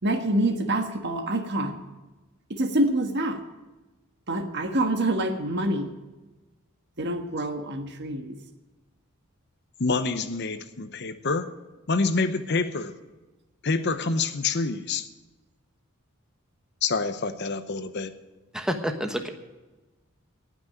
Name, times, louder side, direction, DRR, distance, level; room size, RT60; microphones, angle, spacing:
voice 1, 0.0-1.8 2.5-3.4 4.3-5.9 7.0-8.4, right 1 dB, 55° right, 6 dB, 1.4 m, -26 dB
voice 2, 9.8-11.5 11.9-12.9 13.6-15.1 16.8-18.1, left 4 dB, 50° left, 11 dB, 0.8 m, -27 dB
voice 3, 18.5-19.3, equal, 5° right, 5 dB, 1.2 m, -28 dB
18.5 x 6.2 x 9.1 m, 1.2 s
head